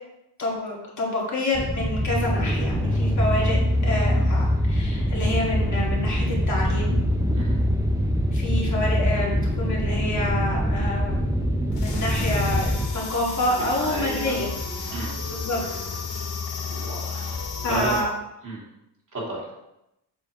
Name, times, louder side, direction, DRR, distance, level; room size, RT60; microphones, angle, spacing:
voice 1, 0.4-7.0 8.3-11.5 11.8-14.5 15.3-15.6 17.6-18.1, left 2 dB, 40° left, -4 dB, 2.2 m, -28 dB
sound 1, 1.5-12.9, equal, 10° right, 0.6 m, -23 dB
sound 2, 11.7-18.0, left 4 dB, 65° left, 2.5 m, -32 dB
voice 2, 13.6-14.4 14.9-15.2 16.7-17.4 17.7-18.0 18.4-18.6 19.1-19.4, right 2 dB, 45° right, -5 dB, 2.9 m, -32 dB
7.7 x 6.8 x 3.7 m, 0.86 s
wide cardioid pair, 175°, 43 cm